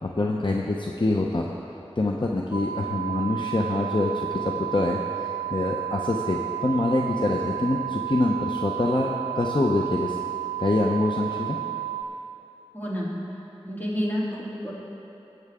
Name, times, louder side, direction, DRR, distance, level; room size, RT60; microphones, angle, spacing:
voice 1, 0.0-1.5 2.0-10.2 10.6-11.6, left 2 dB, 50° left, -1 dB, 0.7 m, -25 dB
sound 1, 2.5-12.0, right 13 dB, 60° right, 0.7 m, -32 dB
voice 2, 12.7-13.2 13.6-14.7, equal, 15° left, -6 dB, 3.0 m, -29 dB
19.0 x 8.0 x 3.6 m, 3.0 s
wide cardioid pair, 40°, 10 cm